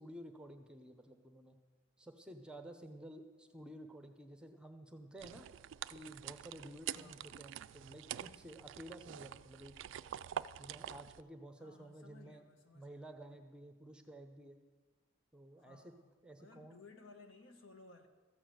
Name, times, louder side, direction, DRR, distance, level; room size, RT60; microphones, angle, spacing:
voice 1, 0.0-1.6 2.0-5.5 5.9-9.7 10.6-12.4 12.7-14.6 15.3-15.9 16.2-16.8, right 1 dB, 5° right, 6 dB, 0.7 m, -52 dB
sound 1, 5.2-11.2, right 10 dB, 65° right, 0.3 m, -46 dB
voice 2, 6.9-7.4 11.6-13.1 15.6-16.1 16.4-18.1, left 3 dB, 70° left, 6 dB, 1.2 m, -59 dB
13.5 x 7.2 x 7.7 m, 1.4 s
head